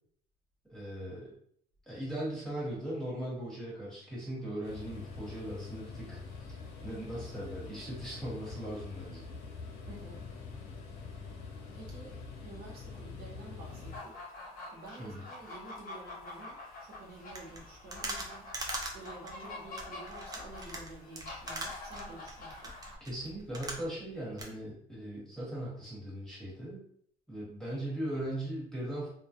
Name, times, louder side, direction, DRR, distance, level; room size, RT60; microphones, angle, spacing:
voice 1, 0.7-1.3 1.9-6.6 6.8-9.3 15.0-15.2 23.0-26.8 27.3-29.1, right 1 dB, 5° left, -7 dB, 1.2 m, -39 dB
sound 1, 4.6-14.0, left 4 dB, 80° left, 0.6 m, -45 dB
voice 2, 9.8-10.3 11.7-12.2 12.4-14.2 14.7-18.5 18.9-22.7, right 2 dB, 60° right, -2 dB, 0.7 m, -50 dB
sound 2, 13.6-23.0, left 2 dB, 55° left, 1.0 m, -46 dB
sound 3, 17.3-24.1 24.4-24.5, right 2 dB, 25° right, 0.5 m, -41 dB
2.3 x 2.0 x 2.7 m, 0.65 s
cardioid pair, 110°, 17 cm